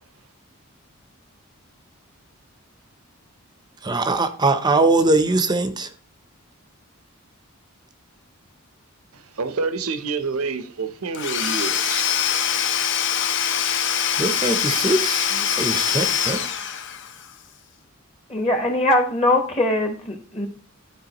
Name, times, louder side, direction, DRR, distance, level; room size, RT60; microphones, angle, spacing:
voice 1, 3.8-5.9 14.2-16.5, right 2 dB, 20° right, 0.6 m, -21 dB
voice 2, 9.1-12.1, right 4 dB, 80° right, 0.7 m, -28 dB
Domestic sounds home sounds / Tools, 11.1-17.3, left 8 dB, 55° left, 0.7 m, -23 dB
voice 3, 18.3-20.5, left 1 dB, 25° left, 1.1 m, -21 dB
12.0 x 4.7 x 2.9 m
head